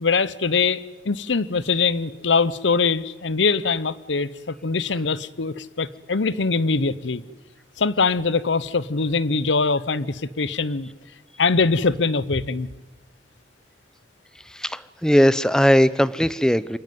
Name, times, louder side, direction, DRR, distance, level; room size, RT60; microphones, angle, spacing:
voice 1, 0.0-7.2 7.8-10.9 11.4-12.7, left 4 dB, 80° left, 18 dB, 0.9 m, -22 dB
voice 2, 14.5-16.8, equal, 5° left, 17 dB, 0.7 m, -19 dB
27.5 x 17.5 x 9.4 m, 1.3 s
head